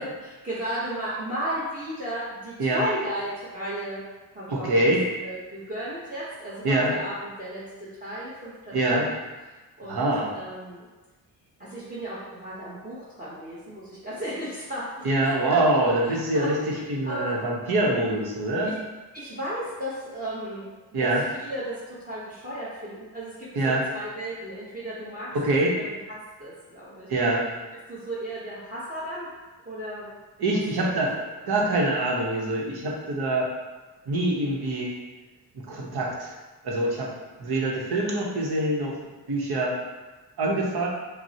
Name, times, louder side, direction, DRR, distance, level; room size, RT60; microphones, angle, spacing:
voice 1, 0.0-4.0 4.3-4.9 5.2-9.2 9.8-10.1 10.3-10.8 11.6-15.6 16.1-16.5 17.0-17.4 18.6-18.7 19.1-20.6 21.0-21.1 21.4-27.1 27.9-29.3 29.6-30.1 30.8-31.2, right 1 dB, 20° right, -8 dB, 0.9 m, -35 dB
voice 2, 4.5-5.0 6.6-6.9 8.7-9.1 9.9-10.3 15.0-16.6 16.9-18.7 20.9-21.2 23.5-23.8 25.3-25.7 27.1-27.5 30.4-31.1 31.5-33.5 34.1-34.9 35.5-36.3 36.6-37.1 37.4-39.0 39.3-39.7 40.4-40.9, right 2 dB, 65° right, -2 dB, 1.0 m, -24 dB
5.9 x 2.1 x 2.8 m, 1.2 s
cardioid pair, 95°, 41 cm